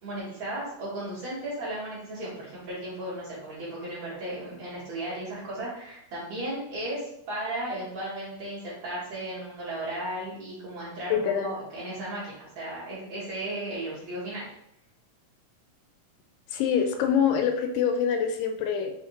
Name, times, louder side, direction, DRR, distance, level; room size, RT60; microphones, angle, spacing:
voice 1, 0.0-14.4, right 1 dB, 60° right, -9 dB, 2.6 m, -35 dB
voice 2, 11.1-11.5 16.5-18.9, left 7 dB, 85° left, 5 dB, 2.2 m, -25 dB
5.7 x 2.6 x 2.9 m, 0.76 s
omnidirectional pair, 3.8 m